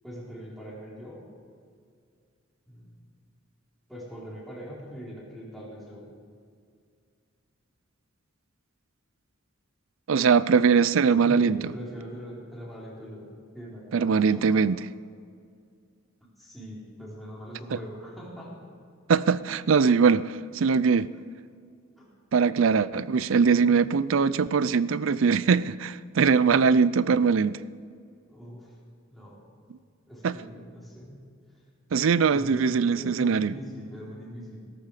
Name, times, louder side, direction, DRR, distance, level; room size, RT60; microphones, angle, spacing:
voice 1, 0.0-1.3 2.7-3.0 3.9-6.1 11.2-14.7 16.4-18.6 22.0-22.1 23.4-23.9 28.3-28.7 29.1-29.4 30.1-31.3 32.3-34.7, equal, ahead, -6 dB, 4.3 m, -42 dB
voice 2, 10.1-11.6 13.9-14.8 19.1-21.1 22.3-27.6 30.2-30.4 31.9-33.5, right 5 dB, 75° right, 18 dB, 0.5 m, -21 dB
17.0 x 14.0 x 5.0 m, 2.2 s
head